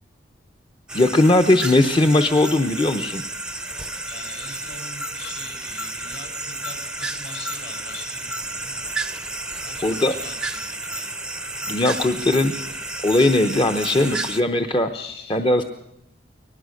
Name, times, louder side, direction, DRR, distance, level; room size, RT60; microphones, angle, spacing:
voice 1, 0.9-3.2 9.8-10.1 11.7-12.5 13.0-14.9 15.3-15.6, left 2 dB, 30° left, 8 dB, 0.8 m, -19 dB
sound 1, 0.9-14.4, right 2 dB, 5° right, 0.7 m, -31 dB
voice 2, 4.0-8.8 9.2-11.1 14.9-15.4, left 4 dB, 60° left, 5 dB, 6.5 m, -41 dB
22.5 x 19.5 x 6.5 m, 0.83 s
head